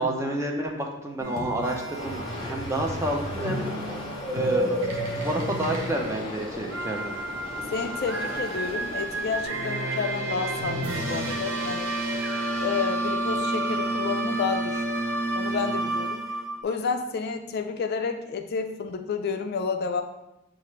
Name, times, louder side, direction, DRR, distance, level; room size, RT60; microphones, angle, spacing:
voice 1, 0.0-3.7 4.3-4.8 5.1-7.1, right 1 dB, 15° right, 1 dB, 0.5 m, -29 dB
sound 1, 1.2-16.6, right 2 dB, 70° right, 0.7 m, -31 dB
sound 2, 1.9-9.4, equal, 25° left, 0.7 m, -34 dB
voice 2, 7.7-11.9 12.6-14.8 15.4-16.2 16.6-20.0, left 5 dB, 50° left, 6 dB, 0.3 m, -30 dB
6.8 x 2.5 x 3.0 m, 0.94 s
head